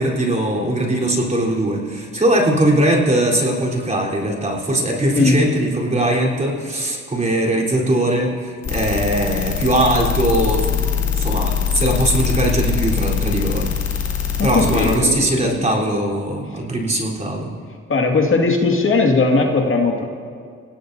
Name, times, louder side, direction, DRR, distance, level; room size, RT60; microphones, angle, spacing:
voice 1, 0.0-13.7 14.4-17.5, right 1 dB, 25° right, -2 dB, 3.9 m, -20 dB
sound 1, 8.6-15.0, left 7 dB, 65° left, 2.9 m, -22 dB
voice 2, 14.4-15.8 16.5-16.6 17.9-20.0, left 3 dB, 45° left, 1 dB, 2.1 m, -18 dB
29.0 x 17.5 x 2.7 m, 2.2 s
cardioid pair, 90°, 30 cm